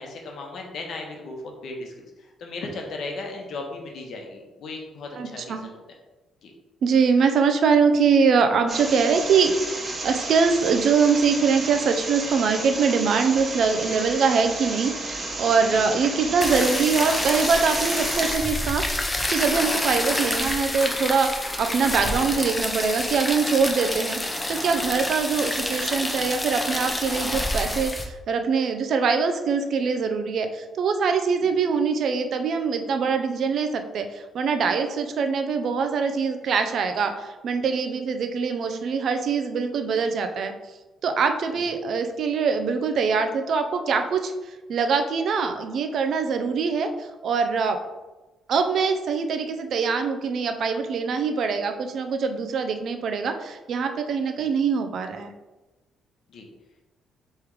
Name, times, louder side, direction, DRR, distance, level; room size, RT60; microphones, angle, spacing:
voice 1, 0.0-5.8 6.4-6.5 15.7-15.8 31.4-31.5 41.6-41.7 54.4-54.5 56.3-56.5, left 3 dB, 65° left, 1 dB, 1.0 m, -36 dB
voice 2, 5.1-5.6 6.8-9.5 10.0-18.9 19.3-24.2 24.5-40.5 41.0-44.3 44.7-47.8 48.5-55.3, right 5 dB, 65° right, 7 dB, 0.5 m, -23 dB
sound 1, 8.7-18.4, right 2 dB, 40° right, 1.3 m, -32 dB
sound 2, 16.4-28.0, left 1 dB, 15° left, 0.6 m, -28 dB
3.6 x 3.2 x 4.6 m, 1.1 s
cardioid pair, 90°, 0 cm